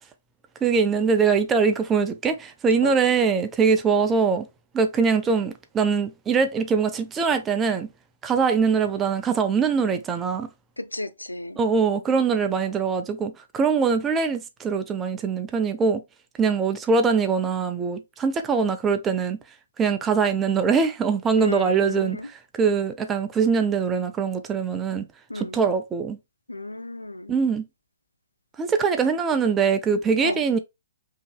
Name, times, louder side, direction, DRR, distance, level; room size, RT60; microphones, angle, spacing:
voice 1, 0.6-4.5 4.7-7.9 8.2-10.5 11.6-16.0 16.4-19.4 19.8-22.2 22.6-25.0 25.3-26.2 27.3-27.6 28.6-30.6, right 5 dB, 15° right, 0.5 m, -22 dB
voice 2, 10.8-11.6 21.4-22.3 25.3-25.6 26.5-27.4 30.2-30.4, left 2 dB, 85° left, 0.5 m, -33 dB
5.3 x 2.9 x 2.2 m
figure-of-eight pair, 120°, 0 cm